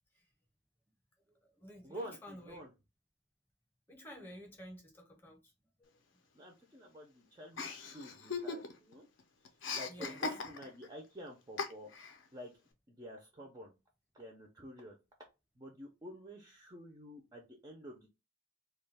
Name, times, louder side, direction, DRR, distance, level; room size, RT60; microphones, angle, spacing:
voice 1, 1.3-2.6 3.9-5.4 9.9-10.2, equal, 10° left, 0.7 m, -51 dB
voice 2, 1.8-2.7 6.3-9.1 9.7-12.0 12.3-12.5 12.9-13.7 14.1-14.9 15.6-18.1, equal, 20° right, 0.3 m, -49 dB
Chuckle chortle, 7.6-8.9 9.2-10.9 11.6-12.2, left 4 dB, 65° left, 0.5 m, -39 dB
2.2 x 2.2 x 3.2 m
head